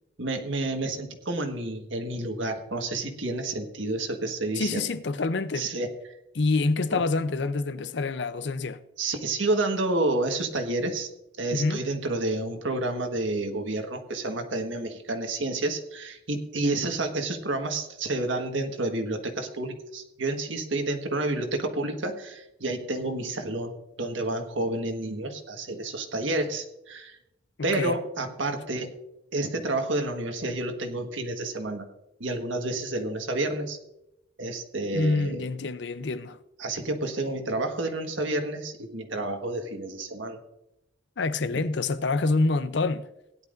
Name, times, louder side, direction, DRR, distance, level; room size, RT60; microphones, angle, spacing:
voice 1, 0.2-4.8 5.5-6.2 6.9-7.0 9.0-11.1 11.4-23.7 24.0-27.2 27.6-28.9 29.3-31.9 32.2-33.8 34.4-35.5 36.6-40.4 41.5-41.7, right 2 dB, 80° right, 1.5 m, -30 dB
voice 2, 4.5-5.7 6.3-8.8 11.5-11.9 27.7-28.0 34.9-36.4 41.2-43.1, left 3 dB, 65° left, 0.6 m, -26 dB
17.5 x 10.5 x 2.6 m
head